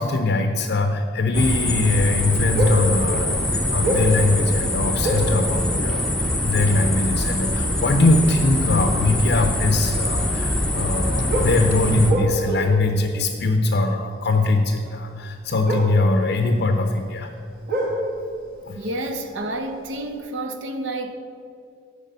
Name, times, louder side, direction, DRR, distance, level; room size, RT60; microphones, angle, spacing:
voice 1, 0.0-17.3 18.6-18.8, left 2 dB, 55° left, 6 dB, 0.5 m, -21 dB
sound 1, 1.3-12.1, left 1 dB, 5° left, 0.6 m, -24 dB
sound 2, 2.5-3.0 3.5-4.3 5.0-5.4 6.5-6.6 7.2-7.4 9.2-9.3 11.3-12.9 13.2-13.3 15.6-16.9 17.2-19.5 19.8-20.0, right 1 dB, 50° right, 1.3 m, -25 dB
sound 3, 2.6-12.0, equal, 25° right, 1.1 m, -36 dB
voice 2, 18.7-21.1, right 1 dB, 80° right, 7 dB, 0.8 m, -29 dB
9.0 x 4.9 x 6.7 m, 2.4 s
head